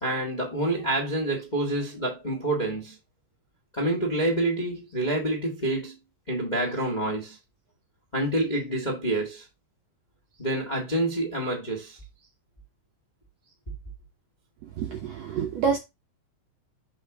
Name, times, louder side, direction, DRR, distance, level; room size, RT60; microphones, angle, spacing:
voice 1, 0.0-3.0 3.7-6.0 6.3-7.4 8.1-9.4 10.4-12.0, right 1 dB, 25° left, 1.0 m, -27 dB
voice 2, 14.8-15.8, right 6 dB, 65° right, 1.7 m, -27 dB
6.9 x 5.0 x 3.6 m
omnidirectional pair, 4.2 m